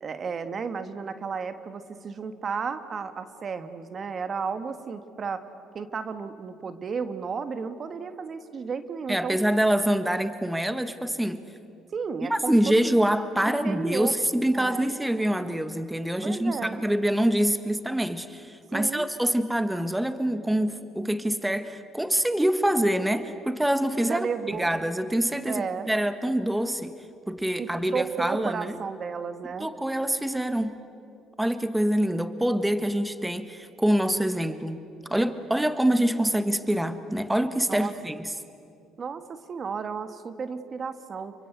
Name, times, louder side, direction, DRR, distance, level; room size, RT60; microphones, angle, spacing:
voice 1, 0.0-5.4 5.7-9.4 11.9-12.7 13.4-14.1 14.5-15.0 16.2-16.8 18.7-19.1 24.0-24.7 25.5-25.9 27.6-29.7 37.7-37.9 39.0-41.3, right 5 dB, 45° right, 9 dB, 1.6 m, -33 dB
voice 2, 9.1-11.4 12.2-26.9 27.3-28.8 29.6-30.7 31.4-34.8 35.1-38.3, right 1 dB, 5° right, 10 dB, 1.5 m, -25 dB
29.0 x 24.0 x 8.1 m, 2.5 s
supercardioid pair, 70°, 0 cm